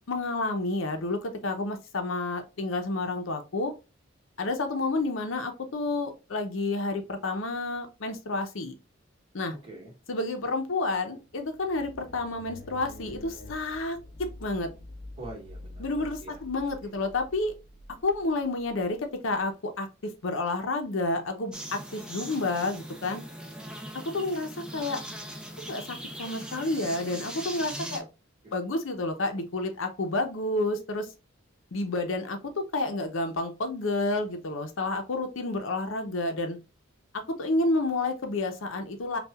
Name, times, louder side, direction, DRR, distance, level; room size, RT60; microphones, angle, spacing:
voice 1, 0.1-3.7 4.4-8.7 9.3-9.5 10.1-14.7 15.8-17.5 18.0-19.0 19.2-19.9 20.2-23.2 23.9-25.0 25.7-28.0 28.5-31.1 31.7-36.6 37.4-39.2, left 2 dB, 75° left, 0.7 m, -30 dB
voice 2, 9.5-10.2 15.2-16.4 16.8-17.0 27.7-28.1 28.4-28.6, right 1 dB, 25° right, 1.6 m, -45 dB
sound 1, 11.2-19.4, left 2 dB, 40° left, 0.6 m, -47 dB
sound 2, 21.5-28.0, right 1 dB, 5° right, 0.5 m, -40 dB
5.5 x 2.4 x 2.3 m
head